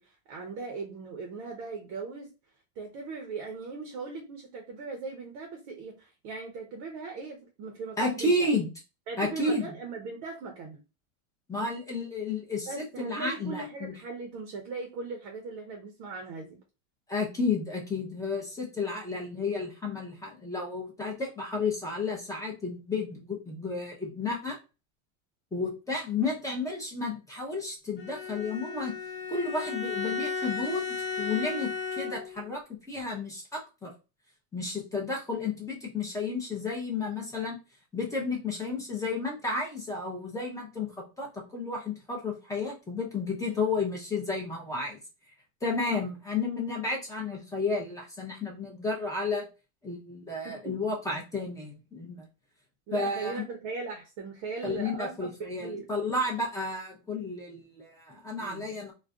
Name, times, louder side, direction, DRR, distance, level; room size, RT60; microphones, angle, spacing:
voice 1, 0.0-2.3 2.8-8.3 9.1-10.8 12.7-16.6 50.4-50.7 52.9-55.3 55.6-55.9 58.4-58.7, right 4 dB, 40° right, 3 dB, 0.6 m, -39 dB
voice 2, 8.0-8.7 9.2-9.7 11.5-13.9 17.1-24.6 25.5-28.9 29.3-33.9 34.5-37.6 37.9-45.0 45.6-49.5 49.8-52.2 52.9-53.4 54.6-58.9, left 3 dB, 10° left, -1 dB, 0.6 m, -32 dB
Bowed string instrument, 28.0-32.5, left 4 dB, 25° left, 1.0 m, -34 dB
2.4 x 2.2 x 3.5 m, 0.30 s
supercardioid pair, 130°, 45 cm